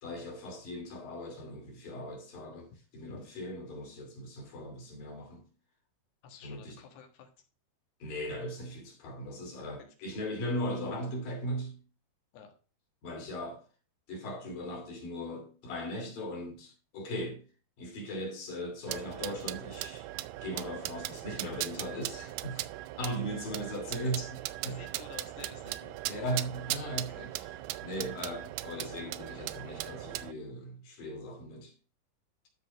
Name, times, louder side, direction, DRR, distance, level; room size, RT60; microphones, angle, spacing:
voice 1, 0.0-5.5 6.4-6.8 8.0-11.8 13.0-13.6 14.1-17.4 17.8-20.1 20.4-22.7 23.0-24.8 26.1-27.6 27.8-31.7, equal, 60° left, 4.0 m, -38 dB
voice 2, 6.2-7.3 9.6-10.0 12.3-12.5 23.8-24.1 24.6-26.0 27.1-27.2, left 6 dB, 90° left, 3.8 m, -51 dB
sound 1, 18.9-30.3, right 16 dB, 85° right, 2.4 m, -39 dB
13.0 x 4.3 x 4.6 m
omnidirectional pair, 4.6 m